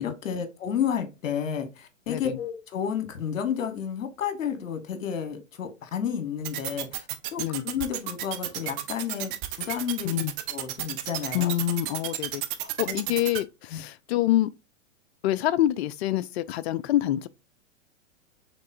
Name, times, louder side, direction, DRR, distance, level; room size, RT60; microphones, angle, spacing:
voice 1, 0.0-10.2 10.5-11.5 12.6-13.0 13.7-13.8, left 8 dB, 70° left, 1.2 m, -31 dB
sound 1, 6.4-13.4, right 14 dB, 20° right, 0.3 m, -31 dB
voice 2, 11.3-12.4 12.8-14.5 15.2-17.3, left 14 dB, 55° left, 0.5 m, -26 dB
5.2 x 3.6 x 2.6 m
hypercardioid pair, 115°, 39 cm